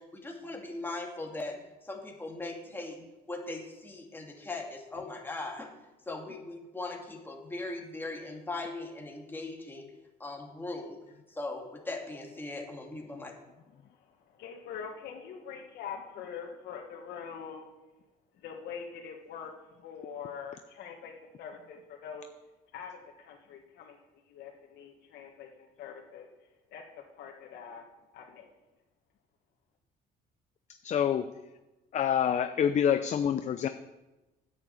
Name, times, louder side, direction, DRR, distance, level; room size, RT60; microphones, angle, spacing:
voice 1, 0.0-3.0 3.3-5.7 6.1-9.9 10.2-11.0 11.3-13.4, left 2 dB, 10° left, 1 dB, 2.2 m, -39 dB
voice 2, 13.8-17.6 18.4-19.5 19.8-22.3 22.7-24.0 24.3-26.3 26.7-26.8 27.2-27.8 28.1-28.5, left 7 dB, 75° left, 0 dB, 1.6 m, -44 dB
voice 3, 30.8-31.3 31.9-33.7, left 8 dB, 45° left, 9 dB, 0.6 m, -27 dB
9.7 x 7.3 x 8.1 m, 1.1 s
cardioid pair, 110°, 17 cm